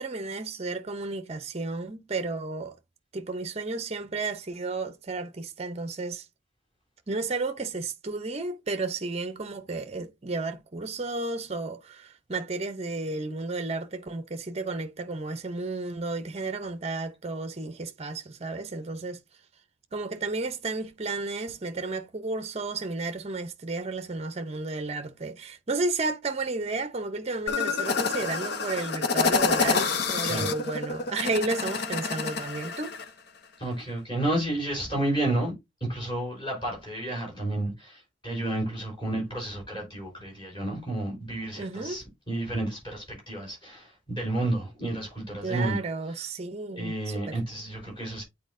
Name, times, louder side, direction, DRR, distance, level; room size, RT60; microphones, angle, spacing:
voice 1, 0.0-2.8 3.1-6.3 7.1-19.2 19.9-33.0 41.6-42.0 45.4-47.4, right 3 dB, 30° right, 0.6 m, -32 dB
sound 1, 27.5-33.1, left 4 dB, 50° left, 0.6 m, -28 dB
voice 2, 33.6-35.5 35.9-45.8 46.2-46.3 46.8-48.2, right 1 dB, 25° left, 3.8 m, -31 dB
8.7 x 4.2 x 2.6 m
head